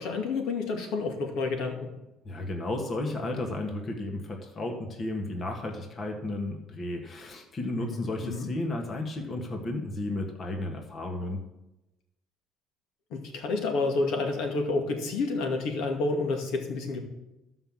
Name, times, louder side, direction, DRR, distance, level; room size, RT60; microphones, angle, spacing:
voice 1, 0.0-1.9 7.8-8.5 13.1-17.0, left 3 dB, 75° left, 3 dB, 2.3 m, -29 dB
voice 2, 2.2-11.4, left 2 dB, 35° left, 2 dB, 1.7 m, -33 dB
12.5 x 5.6 x 7.4 m, 0.96 s
cardioid pair, 115°, 0 cm